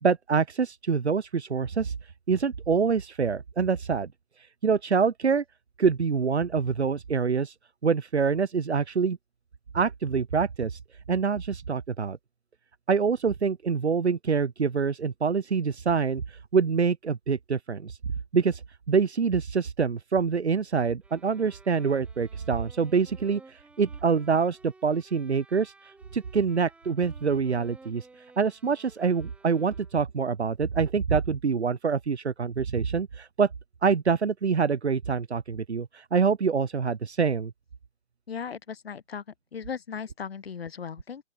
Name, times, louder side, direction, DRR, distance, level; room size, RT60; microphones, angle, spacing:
voice 1, 0.0-1.9 2.3-4.1 4.6-5.4 5.8-7.5 7.8-9.2 9.7-10.8 11.1-12.2 12.9-18.0 18.3-18.6 18.9-28.1 28.4-33.5 33.8-37.5, right 5 dB, 85° right, 1.7 m, -25 dB
sound 1, 21.0-30.2, right 3 dB, 5° right, 3.0 m, -55 dB
voice 2, 38.3-39.2 39.5-41.2, left 6 dB, 65° left, 3.2 m, -37 dB
open air
hypercardioid pair, 150°, 33 cm